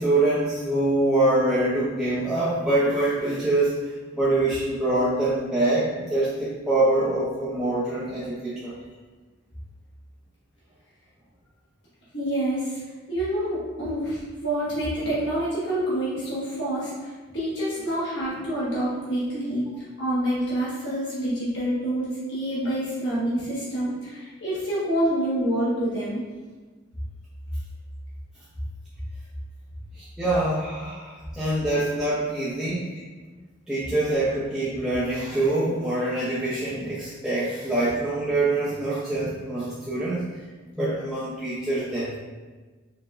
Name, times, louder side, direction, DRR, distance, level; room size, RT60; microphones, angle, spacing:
voice 1, 0.0-8.7 30.0-32.9 33.7-40.2 40.8-42.1, right 2 dB, 5° right, -11 dB, 0.6 m, -25 dB
voice 2, 12.1-12.8 13.1-19.6 20.0-26.2, right 1 dB, 60° left, -9 dB, 1.4 m, -27 dB
4.7 x 3.6 x 2.5 m, 1.3 s
head